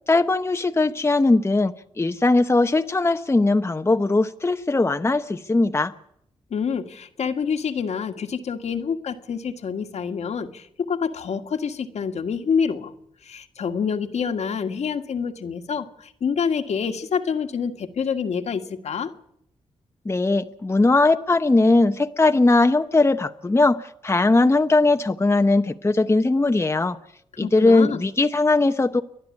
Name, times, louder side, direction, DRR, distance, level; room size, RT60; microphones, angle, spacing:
voice 1, 0.1-5.9 20.0-27.0 27.4-29.0, left 2 dB, 20° left, 7 dB, 0.9 m, -19 dB
voice 2, 6.5-12.9 13.2-19.1 27.4-28.0, left 6 dB, 70° left, 7 dB, 1.7 m, -27 dB
30.0 x 11.5 x 8.4 m, 0.77 s
cardioid pair, 60°, 12 cm